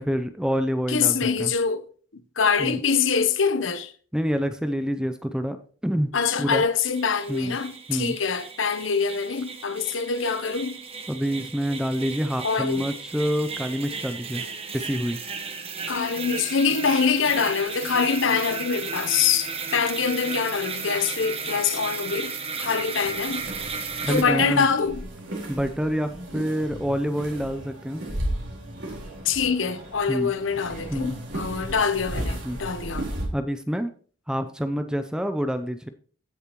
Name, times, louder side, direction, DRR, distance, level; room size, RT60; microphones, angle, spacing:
voice 1, 0.0-1.5 2.6-2.8 4.1-5.6 5.8-6.1 6.4-6.6 7.3-7.6 7.9-8.2 11.1-14.4 14.7-15.2 24.0-24.7 25.5-28.0 30.1-30.3 30.9-31.2 32.4-32.7 33.3-33.9 34.3-35.9, equal, 5° right, 0.6 m, -27 dB
voice 2, 0.9-1.9 2.1-3.9 6.1-10.8 12.4-12.9 15.9-23.4 24.1-25.0 29.2-33.1, left 6 dB, 85° left, 0.9 m, -24 dB
sound 1, 6.8-24.2, right 5 dB, 30° right, 1.1 m, -35 dB
sound 2, 23.0-33.3, right 1 dB, 80° right, 4.3 m, -35 dB
16.0 x 7.2 x 3.1 m
head